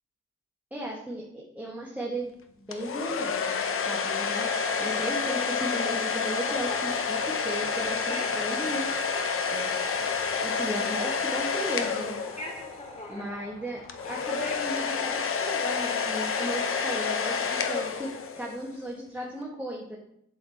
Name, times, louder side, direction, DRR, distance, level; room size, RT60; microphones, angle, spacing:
voice 1, 0.7-2.3 2.6-3.6 3.8-8.9 9.5-10.1 10.4-12.2 13.1-13.8 14.1-20.0, right 1 dB, 5° right, -4 dB, 1.5 m, -36 dB
sound 1, 2.7-12.8 13.9-18.6, left 5 dB, 45° left, 0.9 m, -29 dB
sound 2, 6.5-14.5, left 1 dB, 25° left, 2.2 m, -44 dB
7.6 x 6.3 x 3.5 m, 0.74 s
cardioid pair, 90°, 30 cm